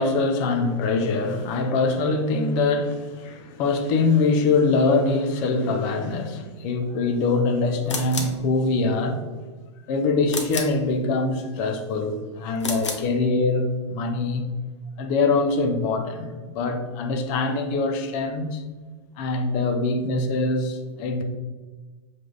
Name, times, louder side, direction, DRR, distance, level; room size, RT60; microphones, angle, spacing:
voice 1, 0.0-9.2 9.9-14.4 15.0-18.6 19.2-21.2, left 3 dB, 45° left, 0.9 m, -23 dB
sound 1, 7.9-8.4 10.3-10.8 12.6-13.1, left 4 dB, 75° left, 1.1 m, -30 dB
7.5 x 3.7 x 4.0 m
figure-of-eight pair, 95°, 15 cm